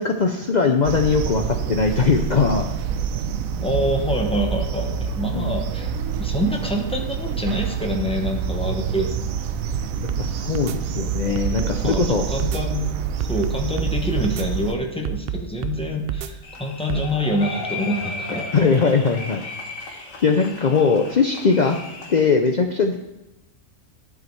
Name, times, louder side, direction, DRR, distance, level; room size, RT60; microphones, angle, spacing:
voice 1, 0.0-2.7 5.3-5.5 10.2-12.2 18.5-19.4 20.2-21.8 22.1-23.0, left 5 dB, 55° left, 4 dB, 0.5 m, -20 dB
sound 1, 0.8-14.8, right 7 dB, 90° right, 1.0 m, -27 dB
voice 2, 3.6-5.9 6.2-9.3 11.8-18.4, equal, 5° left, 2 dB, 0.9 m, -26 dB
sound 2, 9.7-10.2 10.5-10.8 11.4-12.1 12.4-12.6 13.2-13.9 14.2-14.5 15.0-15.8 16.1-16.3 16.9-17.1, right 10 dB, 65° right, 0.6 m, -28 dB
sound 3, 16.4-22.3, left 3 dB, 75° left, 1.7 m, -35 dB
11.5 x 4.9 x 4.6 m, 0.96 s
omnidirectional pair, 1.4 m